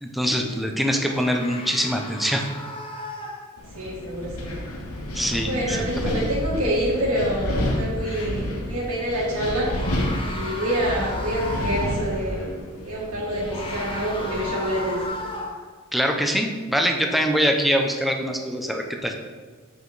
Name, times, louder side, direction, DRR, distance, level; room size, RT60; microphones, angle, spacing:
voice 1, 0.0-2.4 5.1-6.1 15.9-19.1, equal, ahead, 2 dB, 0.7 m, -24 dB
sound 1, 1.1-3.8 8.1-8.2 9.5-12.2 13.3-15.7, left 1 dB, 25° left, 0.9 m, -35 dB
Wind, 3.6-15.1, left 1 dB, 80° left, 1.1 m, -30 dB
voice 2, 3.7-4.6 5.5-9.9 10.1-12.6 12.8-15.2, equal, 80° right, -7 dB, 1.7 m, -27 dB
8.1 x 5.0 x 4.0 m, 1.5 s
head